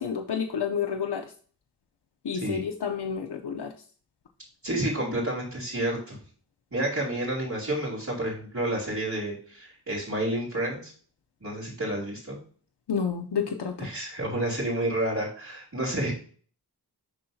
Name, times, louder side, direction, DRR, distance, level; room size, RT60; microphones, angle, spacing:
voice 1, 0.0-1.3 2.2-3.7 12.9-13.9, left 6 dB, 90° left, 4 dB, 0.6 m, -30 dB
voice 2, 4.6-6.2 6.7-10.9 11.4-12.4 13.8-16.1, right 1 dB, 45° right, -8 dB, 3.0 m, -30 dB
11.5 x 3.8 x 2.7 m, 0.43 s
wide cardioid pair, 65°, 39 cm